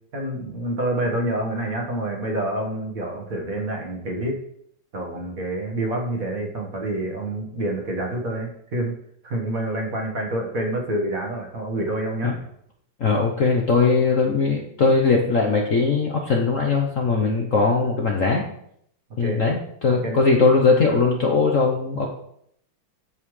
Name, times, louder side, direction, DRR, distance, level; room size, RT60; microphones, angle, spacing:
voice 1, 0.1-4.4 4.9-8.9 9.2-12.4 19.2-19.4 20.0-20.2, right 1 dB, 45° right, 1 dB, 1.7 m, -27 dB
voice 2, 13.0-18.4 19.2-22.1, left 4 dB, 50° left, 0 dB, 1.0 m, -20 dB
13.5 x 5.5 x 3.2 m, 0.70 s
omnidirectional pair, 2.3 m